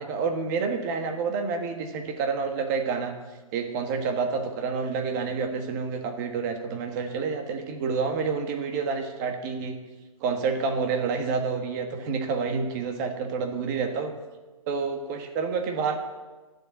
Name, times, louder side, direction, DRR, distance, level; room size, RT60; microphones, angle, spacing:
voice 1, 0.0-3.1 3.5-9.8 10.2-14.1 14.7-16.0, right 5 dB, 30° right, 5 dB, 1.6 m, -28 dB
11.5 x 7.7 x 8.3 m, 1.2 s
hypercardioid pair, 145°, 19 cm